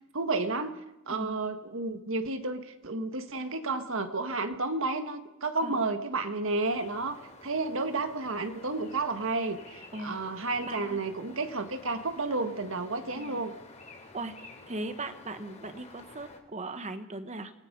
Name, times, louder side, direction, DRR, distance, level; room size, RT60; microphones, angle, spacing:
voice 1, 0.1-0.8 1.1-13.5, right 3 dB, 65° right, 8 dB, 1.6 m, -31 dB
sound 1, 6.6-16.4, left 3 dB, 35° left, 3.0 m, -51 dB
voice 2, 10.7-11.0 13.1-13.4 14.1-14.4 14.7-17.5, right 2 dB, 35° right, 9 dB, 1.5 m, -38 dB
28.0 x 19.0 x 5.5 m, 0.93 s
head